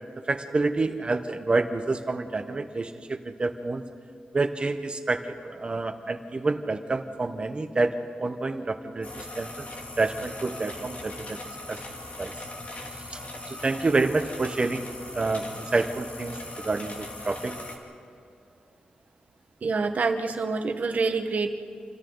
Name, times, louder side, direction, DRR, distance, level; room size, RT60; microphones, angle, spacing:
voice 1, 0.3-3.8 4.3-9.6 10.0-11.4 11.7-11.8 12.2-12.3 13.1-13.2 13.5-14.9 15.1-16.4 16.6-17.5, right 3 dB, 35° right, 7 dB, 1.2 m, -28 dB
sound 1, 9.0-17.8, left 1 dB, 55° left, 2.8 m, -40 dB
voice 2, 19.6-21.5, right 4 dB, 60° right, 6 dB, 1.4 m, -26 dB
29.0 x 24.5 x 4.0 m, 2.5 s
wide cardioid pair, 95°, 3 cm